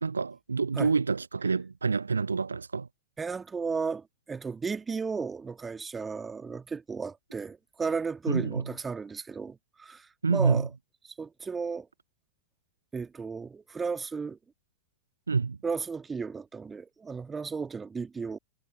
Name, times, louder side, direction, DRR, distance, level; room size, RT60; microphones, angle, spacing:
voice 1, 0.0-2.9 8.3-8.6 10.2-10.7 15.3-15.6, right 4 dB, 75° right, 0.3 m, -27 dB
voice 2, 3.2-10.7 11.2-11.9 12.9-14.4 15.6-18.4, right 5 dB, 15° right, 2.2 m, -34 dB
figure-of-eight pair, 90°, 0 cm